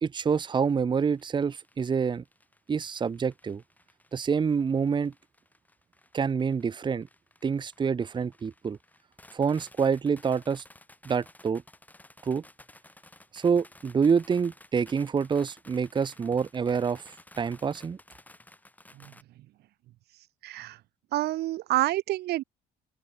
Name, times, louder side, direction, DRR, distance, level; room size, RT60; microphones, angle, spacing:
voice 1, 0.0-2.2 2.7-3.6 4.1-5.1 6.1-7.1 7.4-8.8 9.3-10.6 11.0-11.6 12.2-12.4 13.3-18.0, right 6 dB, 25° right, 0.9 m, -27 dB
sound 1, 1.1-19.2, left 2 dB, 10° left, 5.4 m, -55 dB
voice 2, 20.4-20.8 21.1-22.4, right 16 dB, 75° right, 1.0 m, -28 dB
open air
cardioid pair, 110°, 17 cm